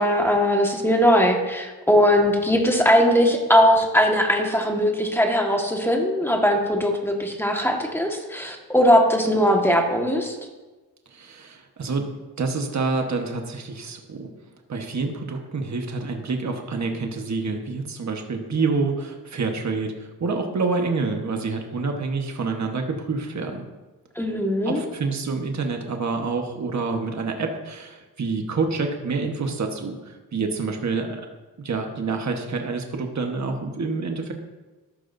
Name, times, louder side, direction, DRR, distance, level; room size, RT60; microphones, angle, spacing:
voice 1, 0.0-10.4 24.1-24.8, equal, 5° left, 1 dB, 1.6 m, -20 dB
voice 2, 11.1-12.1 12.4-14.3 14.7-23.7 24.6-31.2 31.6-34.3, right 4 dB, 45° right, 3 dB, 1.4 m, -27 dB
13.0 x 12.5 x 2.7 m, 1.2 s
cardioid pair, 90°, 38 cm